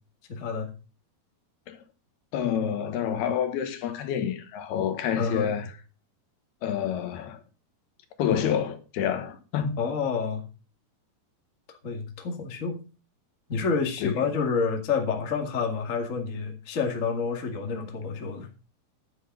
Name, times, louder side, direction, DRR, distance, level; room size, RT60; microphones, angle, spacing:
voice 1, 0.3-0.7 5.2-5.5 9.8-10.4 11.8-12.8 13.5-18.5, left 5 dB, 30° left, 1.4 m, -28 dB
voice 2, 2.3-5.7 6.6-7.4 8.2-9.9 14.0-14.3, left 8 dB, 75° left, 3.1 m, -28 dB
11.0 x 7.8 x 5.4 m
omnidirectional pair, 4.7 m